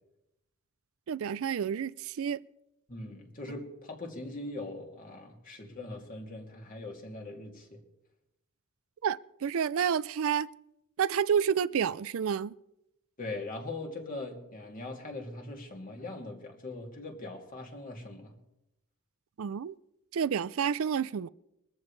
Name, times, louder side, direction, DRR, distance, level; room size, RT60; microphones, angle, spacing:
voice 1, 1.1-2.4 9.0-10.5 11.0-12.5 19.4-19.8 20.1-21.3, right 7 dB, 65° right, 0.4 m, -29 dB
voice 2, 2.9-7.8 13.2-18.3, left 2 dB, 40° left, 2.6 m, -41 dB
22.5 x 14.0 x 3.3 m
head